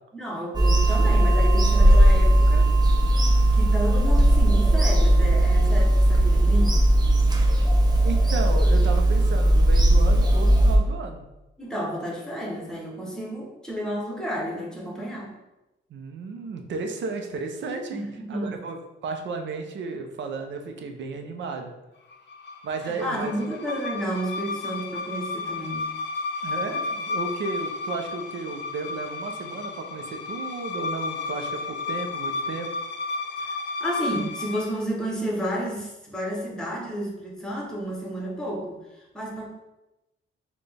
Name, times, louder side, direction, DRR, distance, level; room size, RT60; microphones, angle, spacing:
voice 1, 0.1-2.7 3.5-6.7 11.6-15.3 17.9-18.6 22.8-25.9 33.4-39.5, equal, 5° left, -3 dB, 0.9 m, -31 dB
Bird vocalization bird call bird song / Telephone, 0.5-10.8, right 1 dB, 20° right, 0.5 m, -18 dB
voice 2, 8.0-11.2 15.9-18.8 19.0-21.7 22.6-23.3 26.4-32.7, right 4 dB, 65° right, 4 dB, 0.6 m, -33 dB
sound 1, 22.1-34.8, left 4 dB, 60° left, 0.6 m, -32 dB
4.1 x 2.2 x 3.3 m, 0.97 s
cardioid pair, 120°, 20 cm